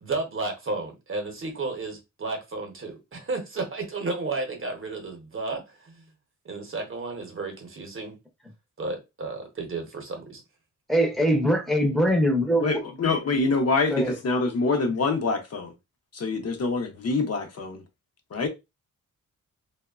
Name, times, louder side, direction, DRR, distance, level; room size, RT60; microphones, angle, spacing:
voice 1, 0.0-6.0 6.4-8.1 8.8-10.4, right 3 dB, 40° right, 0.7 m, -33 dB
voice 2, 10.9-12.6 13.9-14.1, equal, ahead, 0.5 m, -22 dB
voice 3, 12.6-15.7 16.1-17.8 18.3-18.5, left 3 dB, 50° left, 0.5 m, -25 dB
2.9 x 2.0 x 2.3 m
wide cardioid pair, 160°, 32 cm